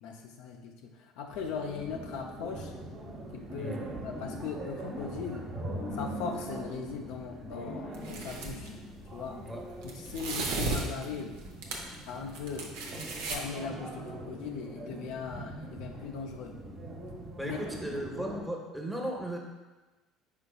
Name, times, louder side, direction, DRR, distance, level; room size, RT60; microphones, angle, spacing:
voice 1, 0.0-2.7 3.3-3.8 4.0-5.5 5.9-8.7 9.1-9.4 9.8-11.4 12.1-12.7 13.2-16.6 17.4-17.6, left 5 dB, 70° left, 2 dB, 0.4 m, -39 dB
sound 1, 1.3-18.4, right 1 dB, 55° right, 1.1 m, -42 dB
voice 2, 3.6-3.9 9.4-9.6 17.4-19.4, right 1 dB, ahead, 0 dB, 0.9 m, -36 dB
sound 2, 7.9-8.7 9.8-12.0 12.3-13.4, right 3 dB, 75° right, 0.6 m, -35 dB
5.1 x 4.3 x 2.3 m, 1.2 s
hypercardioid pair, 65°, 0 cm